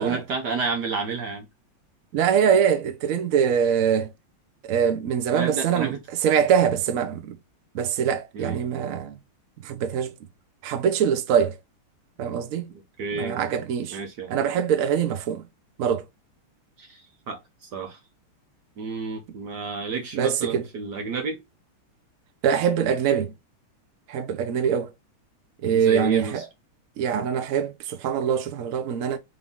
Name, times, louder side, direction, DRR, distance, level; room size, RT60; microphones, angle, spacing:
voice 1, 0.0-1.4 5.3-6.0 8.3-8.6 13.0-13.4 13.9-14.4 16.8-18.0 18.8-21.4 25.7-26.4, right 4 dB, 60° right, 1.3 m, -30 dB
voice 2, 2.1-4.1 4.6-6.0 6.2-7.4 7.7-9.2 9.6-10.1 10.6-11.6 12.2-12.7 13.1-14.0 14.3-15.5 15.8-16.0 20.1-20.7 22.4-23.3 24.1-24.9 25.6-26.4 27.0-29.2, right 8 dB, 90° right, 0.7 m, -23 dB
3.8 x 3.5 x 3.5 m
omnidirectional pair, 2.4 m